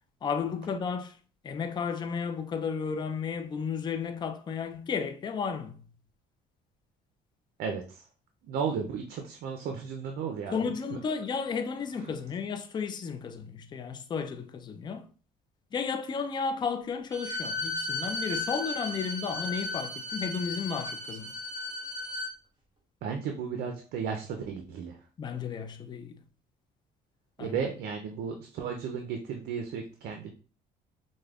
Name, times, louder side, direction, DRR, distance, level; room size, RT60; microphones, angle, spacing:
voice 1, 0.2-1.1 1.4-5.8 10.5-15.1 15.7-21.3 25.2-26.2 27.4-27.6, left 6 dB, 25° left, 0.4 m, -33 dB
voice 2, 7.6-8.0 8.4-10.6 10.9-11.0 12.0-12.1 23.0-25.0 27.4-30.3, right 6 dB, 70° right, 0.5 m, -34 dB
Bowed string instrument, 17.1-22.3, left 2 dB, 25° right, 1.5 m, -35 dB
4.9 x 2.1 x 2.3 m
cardioid pair, 110°, 17 cm